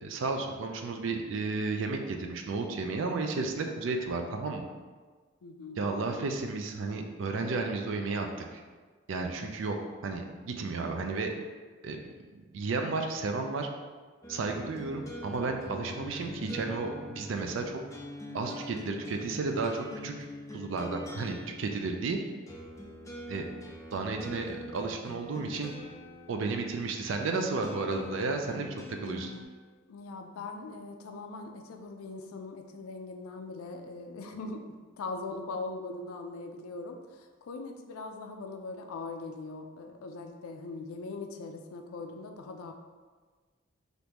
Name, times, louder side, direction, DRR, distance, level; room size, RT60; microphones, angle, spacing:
voice 1, 0.0-4.7 5.8-8.3 8.5-8.6 9.1-9.8 10.0-11.3 11.8-12.0 12.3-13.7 14.3-17.8 18.3-20.1 20.5-22.2 23.3-23.4 23.9-25.7 26.3-29.3, right 3 dB, 65° right, 4 dB, 0.4 m, -33 dB
voice 2, 5.4-5.8 29.9-34.6 35.0-42.7, left 3 dB, 90° left, 5 dB, 0.4 m, -41 dB
sound 1, 14.2-29.4, left 1 dB, 15° left, 0.3 m, -44 dB
3.5 x 2.5 x 2.9 m, 1.4 s
head